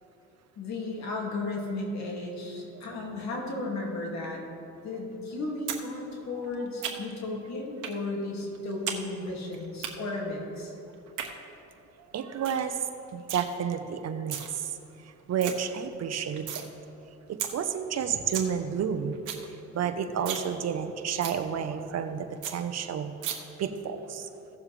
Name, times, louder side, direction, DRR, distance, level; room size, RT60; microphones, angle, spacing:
voice 1, 0.6-10.7, left 2 dB, 65° left, -1 dB, 2.3 m, -34 dB
sound 1, 5.7-5.8 6.1-7.2 7.8-8.0 8.3-9.0 9.3-9.9 10.9-11.3 11.8-11.9 12.1-12.2 12.4-12.7 12.9-13.4 14.1-14.5 14.9-15.0 15.2-15.5 15.9-16.7 17.0-17.1 17.4-17.5 17.9-18.0 18.2-18.5 18.8-18.9 19.1-19.4 19.8-19.9 20.2-20.5 20.8-20.9 21.2-21.4 21.8-21.9 22.1-22.2 22.4-22.5 23.2-23.3, right 9 dB, 85° right, 1.1 m, -34 dB
voice 2, 6.6-7.0 11.2-11.3 12.1-12.8 13.1-14.4 15.3-16.7 17.5-19.2 19.7-23.1 23.6-24.3, right 7 dB, 60° right, 8 dB, 0.8 m, -31 dB
16.5 x 7.1 x 3.3 m, 3.0 s
cardioid pair, 90°, 30 cm